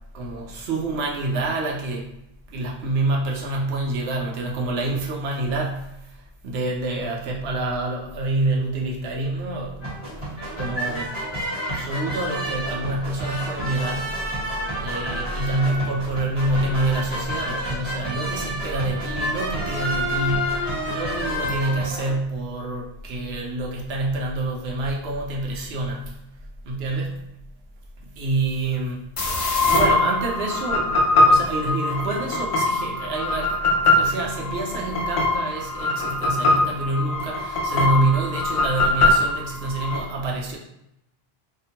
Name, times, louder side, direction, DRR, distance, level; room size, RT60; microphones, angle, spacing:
voice 1, 0.1-2.1 2.5-6.0 6.4-9.9 10.6-11.2 11.6-14.1 14.7-26.1 26.6-27.3 28.2-40.6, right 2 dB, 85° right, -1 dB, 0.9 m, -27 dB
sound 1, 9.8-22.2, equal, 30° right, 1.0 m, -29 dB
sound 2, 29.2-40.0, left 2 dB, 50° left, 0.4 m, -22 dB
2.5 x 2.1 x 2.8 m, 0.83 s
omnidirectional pair, 1.0 m